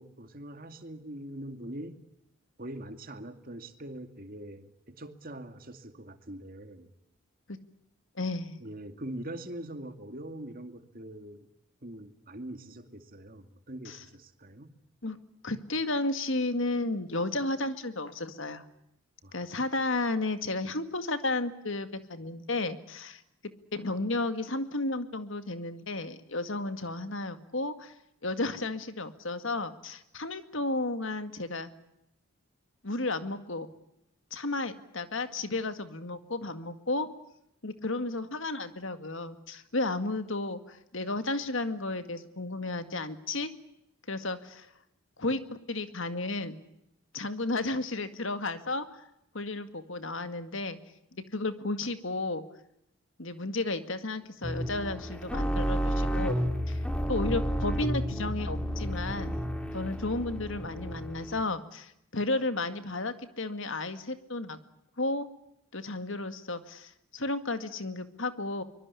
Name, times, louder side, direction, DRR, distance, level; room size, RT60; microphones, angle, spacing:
voice 1, 0.0-2.0 2.6-6.9 8.6-11.5 11.8-14.7 19.2-19.5, right 1 dB, 40° right, 8 dB, 2.4 m, -43 dB
voice 2, 8.2-8.6 13.9-14.0 15.0-15.2 15.4-18.6 19.3-23.2 23.7-27.9 28.2-31.7 32.8-33.7 34.3-37.1 37.6-43.5 44.1-44.7 45.2-46.6 47.1-48.9 49.3-50.8 51.1-52.4 53.2-56.8 57.1-59.5 59.7-64.6 65.0-65.3 65.7-68.6, left 2 dB, 60° left, 10 dB, 2.0 m, -33 dB
sound 1, 54.4-61.4, equal, 5° left, 2.8 m, -31 dB
24.5 x 22.5 x 9.8 m, 0.82 s
head